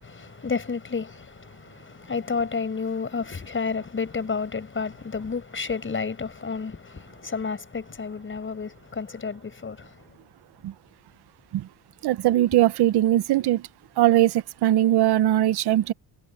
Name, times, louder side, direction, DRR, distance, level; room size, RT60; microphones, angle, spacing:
voice 1, 0.0-10.0, left 5 dB, 30° left, 6.3 m, -31 dB
voice 2, 12.0-13.7 14.0-15.9, right 13 dB, 85° right, 1.0 m, -20 dB
cardioid pair, 125°, 38 cm